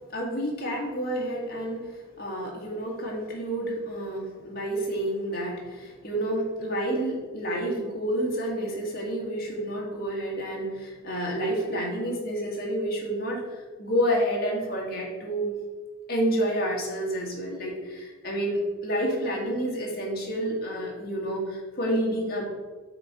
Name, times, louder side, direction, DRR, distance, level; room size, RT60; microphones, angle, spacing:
voice 1, 0.1-15.5 16.1-22.4, right 1 dB, 45° left, -2 dB, 1.9 m, -29 dB
7.8 x 4.3 x 4.8 m, 1.3 s
head